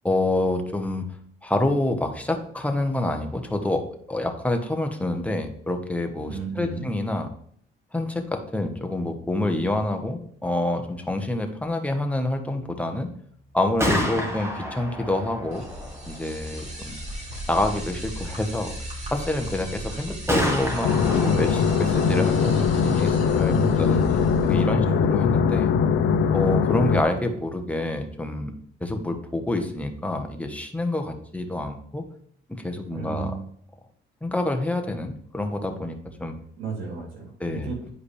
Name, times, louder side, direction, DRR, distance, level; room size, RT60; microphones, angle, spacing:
voice 1, 0.0-1.0 1.4-7.3 7.9-13.1 13.5-15.7 16.1-17.0 17.5-18.7 19.1-25.7 26.3-28.5 28.8-32.0 32.5-33.3 34.2-36.3 37.4-37.7, left 1 dB, 5° left, 5 dB, 1.1 m, -27 dB
voice 2, 6.2-6.8 23.5-24.2 24.8-25.2 32.9-33.5 36.6-37.9, right 5 dB, 85° right, -3 dB, 3.1 m, -33 dB
Gunshot gunfire, 13.6-27.4, equal, 15° right, 1.6 m, -33 dB
sound 1, 15.5-24.6, right 1 dB, 35° right, 2.8 m, -37 dB
sound 2, 20.8-27.0, left 6 dB, 85° left, 0.6 m, -21 dB
9.9 x 4.8 x 3.3 m, 0.64 s
cardioid pair, 90°, 20 cm